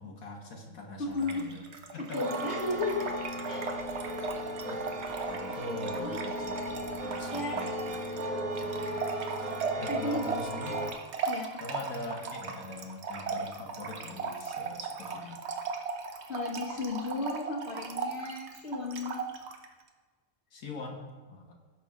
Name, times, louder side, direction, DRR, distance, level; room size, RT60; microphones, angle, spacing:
voice 1, 0.0-2.2 4.6-4.9 5.3-8.0 8.3-9.5 9.8-10.8 11.6-15.4 20.5-21.5, left 2 dB, 90° left, 0 dB, 1.8 m, -43 dB
voice 2, 1.0-1.4 2.0-3.1 3.5-3.7 6.0-6.2 7.2-7.6 9.9-10.4 11.3-11.6 16.3-19.2, left 2 dB, 50° left, -4 dB, 1.4 m, -34 dB
Trickle dribble / Fill (with liquid), 1.2-19.7, right 5 dB, 55° right, 1.1 m, -37 dB
sound 1, 2.2-10.9, right 1 dB, 85° right, 1.6 m, -36 dB
16.5 x 6.0 x 3.7 m, 1.3 s
omnidirectional pair, 1.4 m